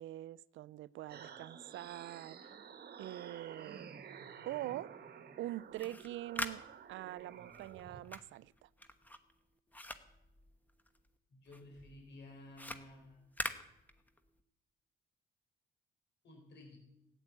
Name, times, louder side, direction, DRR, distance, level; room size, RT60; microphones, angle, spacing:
voice 1, 0.0-2.4 3.0-3.9 4.5-4.9 5.4-6.6 6.9-8.7, right 15 dB, 75° right, 0.4 m, -44 dB
sound 1, 1.1-8.0, right 7 dB, 55° right, 1.3 m, -52 dB
sound 2, 5.6-11.1 11.5-14.4, left 1 dB, 10° left, 1.2 m, -45 dB
voice 2, 11.3-13.2 16.2-16.8, left 1 dB, 65° left, 4.3 m, -54 dB
14.5 x 9.9 x 8.2 m
cardioid pair, 90°, 20 cm